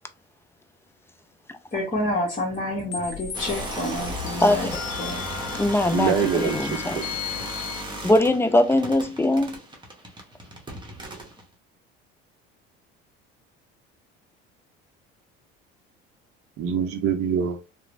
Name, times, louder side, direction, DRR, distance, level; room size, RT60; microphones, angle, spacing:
voice 1, 1.7-4.7 5.0-5.3, left 1 dB, 25° left, 1.0 m, -28 dB
sound 1, 2.9-7.8, left 8 dB, 80° left, 0.6 m, -36 dB
sound 2, 3.3-11.4, right 1 dB, 15° right, 0.9 m, -35 dB
voice 2, 4.4-4.8 5.6-7.0 8.0-9.6, left 1 dB, 10° left, 0.4 m, -21 dB
voice 3, 5.9-7.0 16.6-17.6, right 7 dB, 50° right, 0.6 m, -25 dB
2.9 x 2.0 x 2.5 m
hypercardioid pair, 80°, 30 cm